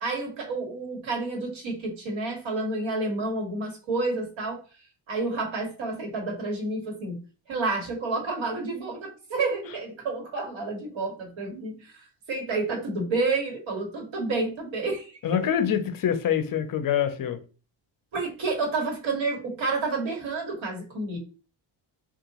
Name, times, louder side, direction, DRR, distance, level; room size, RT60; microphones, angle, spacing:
voice 1, 0.0-4.6 5.1-7.2 7.5-15.2 18.1-21.2, right 3 dB, 80° right, 1.3 m, -30 dB
voice 2, 15.2-17.4, left 9 dB, 50° left, 0.5 m, -25 dB
3.6 x 2.4 x 2.8 m
cardioid pair, 145°, 46 cm